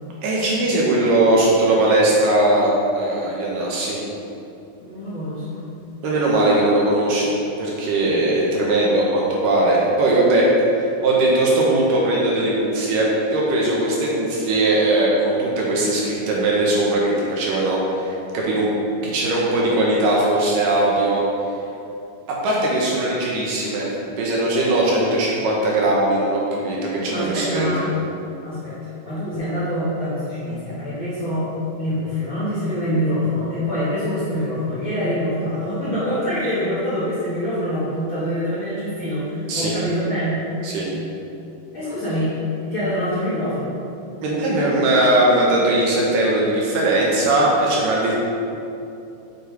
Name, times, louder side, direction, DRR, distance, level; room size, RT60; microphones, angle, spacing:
voice 1, 0.2-4.0 6.0-18.7 19.1-21.2 22.3-23.9 24.2-27.7 39.5-39.7 40.6-40.8 44.2-48.1, right 1 dB, 70° right, -4 dB, 2.4 m, -19 dB
voice 2, 4.8-5.6 27.0-27.8 28.4-28.7 29.0-31.5 31.8-40.4 41.7-42.3 42.6-43.7, equal, 50° left, -12 dB, 1.6 m, -25 dB
7.4 x 6.7 x 3.3 m, 2.7 s
omnidirectional pair, 4.3 m